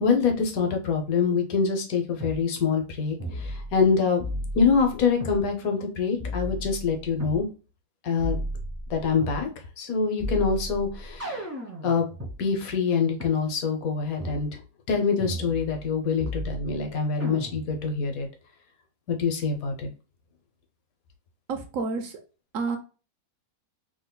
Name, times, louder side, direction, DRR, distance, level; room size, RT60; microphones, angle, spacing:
voice 1, 0.0-4.2 4.5-7.5 8.0-8.4 8.9-9.5 9.8-11.5 11.8-12.1 12.4-14.6 14.9-18.3 19.1-19.9, left 5 dB, 70° left, 4 dB, 1.2 m, -25 dB
sound 1, 2.2-2.4 3.2-3.9 4.2-5.4 6.2-7.4 8.2-9.4 10.2-12.3 13.2-13.3 14.2-14.4 15.2-15.9 16.2-16.8 17.2-17.8, equal, 15° right, 0.7 m, -34 dB
voice 2, 21.5-22.2 22.5-22.8, right 4 dB, 65° right, 5 dB, 0.9 m, -29 dB
3.7 x 2.9 x 2.2 m, 0.34 s
omnidirectional pair, 1.6 m